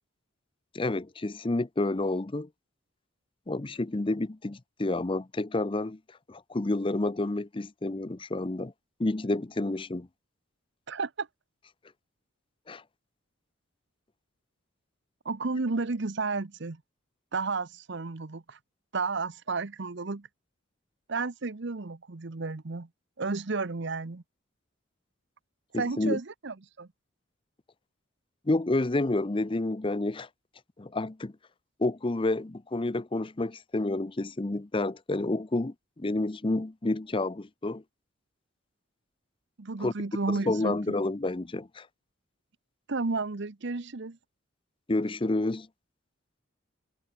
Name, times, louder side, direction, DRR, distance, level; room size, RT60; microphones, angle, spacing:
voice 1, 0.7-2.5 3.5-6.0 6.3-8.7 9.0-10.1 12.7-12.8 25.7-26.2 28.5-30.3 30.8-31.3 31.8-37.8 39.8-39.9 40.3-41.9 44.9-45.7, left 2 dB, 25° left, 0.6 m, -29 dB
voice 2, 10.9-11.3 15.2-16.8 17.3-18.6 18.9-20.3 21.1-22.9 23.2-24.2 25.7-26.9 39.6-40.9 42.9-44.2, right 3 dB, 60° right, 0.9 m, -32 dB
head